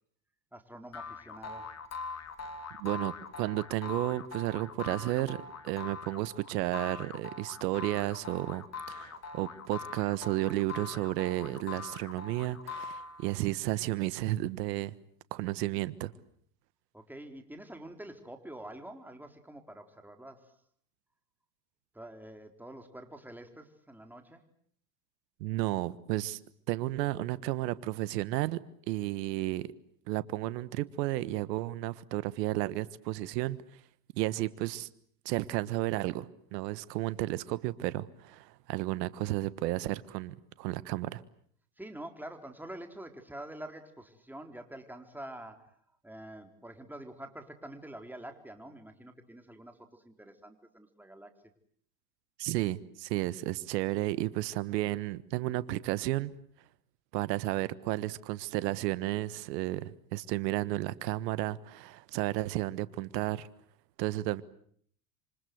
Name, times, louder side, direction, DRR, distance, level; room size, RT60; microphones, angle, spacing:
voice 1, 0.5-1.7 16.9-20.6 21.9-24.4 41.8-45.7 46.0-51.3, right 1 dB, 5° right, 4.2 m, -46 dB
sound 1, 0.9-13.5, left 4 dB, 30° left, 3.5 m, -42 dB
voice 2, 2.8-14.9 15.3-16.1 25.4-26.4 26.7-28.6 28.9-29.7 30.1-33.6 34.2-34.9 35.2-41.2 52.4-56.3 57.1-63.5 64.0-64.4, right 17 dB, 75° right, 1.5 m, -32 dB
28.0 x 25.5 x 7.9 m
hypercardioid pair, 100°, 49 cm